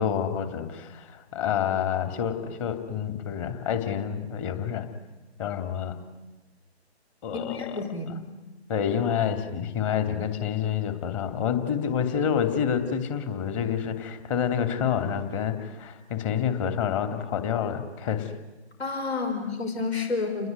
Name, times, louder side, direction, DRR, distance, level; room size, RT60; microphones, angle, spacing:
voice 1, 0.0-4.9 5.4-5.9 7.2-8.2 8.7-18.3, left 8 dB, 30° left, 8 dB, 2.9 m, -28 dB
voice 2, 7.3-8.3 18.8-20.5, left 4 dB, 65° left, 6 dB, 5.7 m, -30 dB
29.5 x 21.0 x 9.6 m, 1.2 s
figure-of-eight pair, 140°, 33 cm